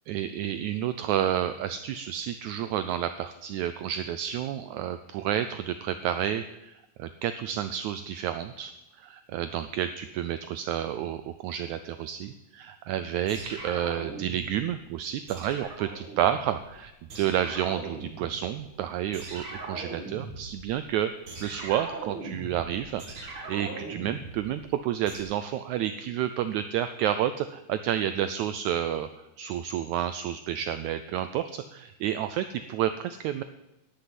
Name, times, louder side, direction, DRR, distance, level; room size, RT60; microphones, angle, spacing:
voice 1, 0.1-21.1 21.4-29.1 29.4-33.4, right 10 dB, 85° right, 11 dB, 1.7 m, -30 dB
sound 1, 13.3-14.8 15.3-16.8 17.1-18.7 19.1-25.2, right 3 dB, 45° right, 2.2 m, -40 dB
11.5 x 7.0 x 9.3 m, 0.92 s
omnidirectional pair, 3.9 m